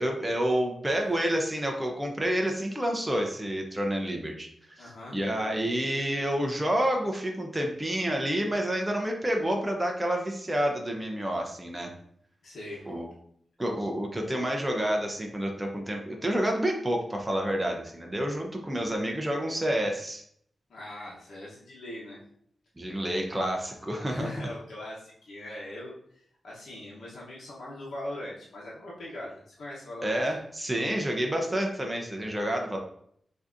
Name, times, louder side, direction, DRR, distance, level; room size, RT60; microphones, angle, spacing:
voice 1, 0.0-4.5 4.8-11.9 12.9-13.1 13.6-20.2 22.8-24.3 30.0-32.8, right 1 dB, 10° right, 1 dB, 0.6 m, -29 dB
voice 2, 4.8-5.2 12.4-12.9 20.7-22.2 23.9-30.3, left 1 dB, 75° left, -5 dB, 1.0 m, -41 dB
5.8 x 2.7 x 2.6 m, 0.66 s
wide cardioid pair, 150°, 0 cm